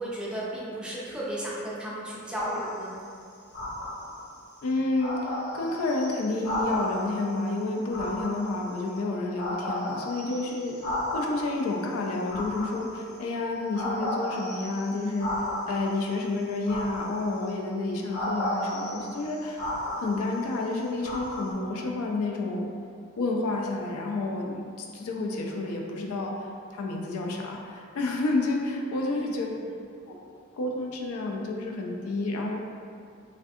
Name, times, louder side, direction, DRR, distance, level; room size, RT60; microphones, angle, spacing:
voice 1, 0.0-3.0 29.0-29.3, right 1 dB, 5° right, -7 dB, 0.5 m, -34 dB
sound 1, 2.3-2.9 3.5-4.3 4.7-4.8 5.0-7.2 7.9-9.0 9.4-11.5 12.2-13.1 13.7-15.9 16.6-17.5 18.1-20.5 21.0-21.5, left 1 dB, 50° left, 0.8 m, -33 dB
voice 2, 4.6-10.8 11.1-15.3 15.7-19.6 20.0-22.7 23.2-29.5 30.5-32.6, left 2 dB, 80° left, 0 dB, 0.4 m, -30 dB
3.3 x 2.4 x 2.6 m, 2.4 s
head